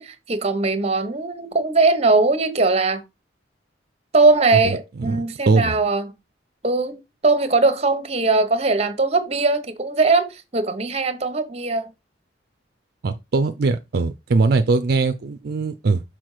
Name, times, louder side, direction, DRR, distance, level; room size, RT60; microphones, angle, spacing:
voice 1, 0.0-3.0 4.1-6.1 6.6-11.9, right 3 dB, 35° right, 0.9 m, -20 dB
voice 2, 4.6-5.8 13.0-16.0, right 3 dB, 55° right, 0.4 m, -21 dB
6.1 x 4.4 x 4.8 m
head